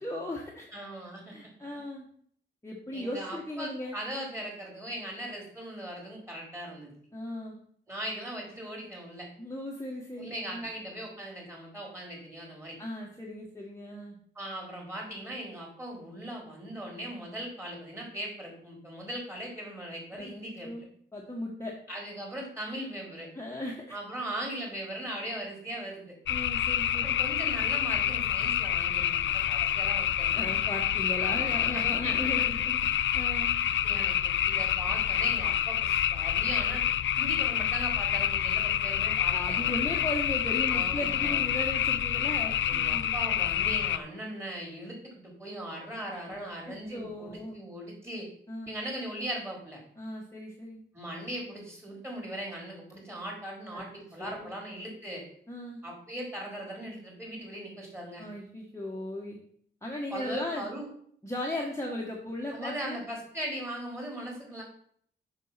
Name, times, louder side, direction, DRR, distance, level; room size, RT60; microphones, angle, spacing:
voice 1, 0.0-0.7 1.3-2.1 2.6-4.0 7.1-7.6 9.4-10.7 12.8-14.2 20.1-20.3 20.6-21.7 23.3-23.9 26.3-27.2 30.3-33.6 39.3-43.1 46.3-47.5 48.5-48.7 50.0-50.8 53.7-53.8 54.2-54.5 55.5-55.8 58.2-59.4 59.8-60.6 61.2-63.0, left 1 dB, 15° left, -2 dB, 1.6 m, -37 dB
voice 2, 0.7-1.4 2.9-6.9 7.9-9.3 10.2-12.8 14.3-20.9 21.9-23.3 23.9-26.2 27.0-30.4 31.2-32.3 33.8-36.8 37.2-39.7 40.7-41.4 42.6-48.3 48.7-49.8 50.9-55.2 55.8-58.3 60.1-60.9 62.5-64.6, right 1 dB, 15° right, -1 dB, 4.4 m, -39 dB
sound 1, 26.3-44.0, left 10 dB, 75° left, 0.4 m, -27 dB
7.4 x 6.4 x 5.8 m, 0.62 s
cardioid pair, 90°, 20 cm